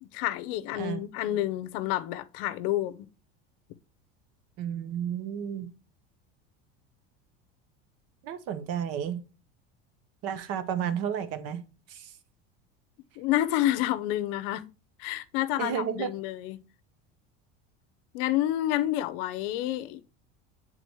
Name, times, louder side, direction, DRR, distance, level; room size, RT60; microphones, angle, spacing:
voice 1, 0.0-3.1 13.2-14.6 15.0-16.6 18.1-20.0, left 14 dB, 70° left, 0.7 m, -29 dB
voice 2, 4.6-5.7 8.2-9.2 10.2-11.6 11.9-12.1 15.6-16.1, right 8 dB, 55° right, 1.0 m, -32 dB
8.1 x 3.9 x 3.1 m
supercardioid pair, 115°, 30 cm